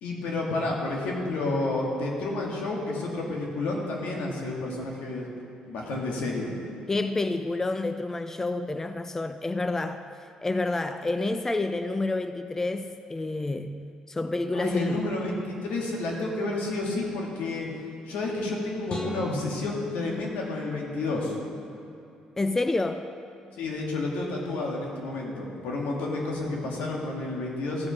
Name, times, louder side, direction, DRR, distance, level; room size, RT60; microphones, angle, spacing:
voice 1, 0.0-5.3 5.7-6.5 14.5-17.7 18.1-21.4 23.6-27.9, left 2 dB, 80° left, -2 dB, 1.9 m, -30 dB
voice 2, 6.9-10.1 10.4-15.0 22.4-23.1, left 2 dB, 15° left, 9 dB, 0.4 m, -29 dB
sound 1, 18.9-21.2, left 1 dB, 40° left, 1.3 m, -39 dB
14.5 x 4.9 x 5.8 m, 2.7 s
cardioid pair, 80°, 2 cm